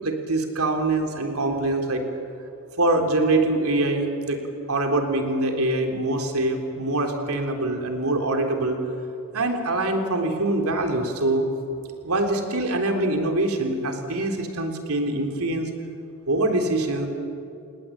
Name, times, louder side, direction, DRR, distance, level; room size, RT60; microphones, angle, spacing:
voice 1, 0.0-2.0 2.8-4.4 4.7-8.8 9.3-11.5 12.0-15.7 16.3-17.1, right 2 dB, 75° right, 3 dB, 3.6 m, -24 dB
29.5 x 19.5 x 8.8 m, 2.6 s
head